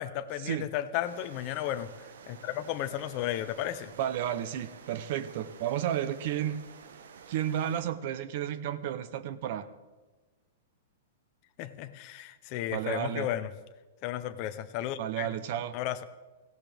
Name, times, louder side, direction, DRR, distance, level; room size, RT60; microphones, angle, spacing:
voice 1, 0.0-1.9 2.3-3.9 11.6-13.5 14.0-15.4 15.7-16.0, left 12 dB, 30° left, 11 dB, 0.7 m, -34 dB
sound 1, 1.0-7.8, right 6 dB, 80° right, 1.3 m, -51 dB
voice 2, 4.0-6.6 7.3-9.7 12.7-13.3 15.0-15.8, right 10 dB, 40° right, 13 dB, 0.8 m, -32 dB
18.5 x 16.0 x 3.5 m, 1.2 s
supercardioid pair, 180°, 0 cm